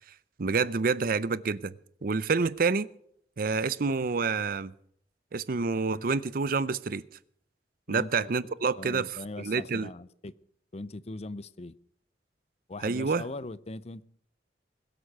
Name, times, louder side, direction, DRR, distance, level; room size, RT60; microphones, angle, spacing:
voice 1, 0.4-1.7 2.0-2.9 3.4-4.7 5.3-7.0 7.9-9.9 12.8-13.2, right 4 dB, 55° right, 0.6 m, -28 dB
voice 2, 7.9-10.3 10.7-11.8 12.7-14.0, left 2 dB, 35° left, 0.6 m, -40 dB
21.0 x 8.1 x 6.6 m
head